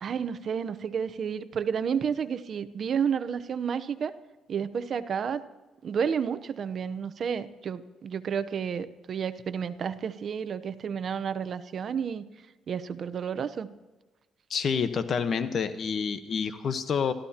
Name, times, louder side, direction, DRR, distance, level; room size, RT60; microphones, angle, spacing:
voice 1, 0.0-4.1 4.5-5.4 5.8-12.3 12.7-13.7, right 7 dB, 55° right, 13 dB, 0.8 m, -31 dB
voice 2, 14.5-17.1, left 6 dB, 55° left, 10 dB, 1.1 m, -28 dB
25.5 x 14.0 x 2.9 m, 1.2 s
cardioid pair, 90°, 0 cm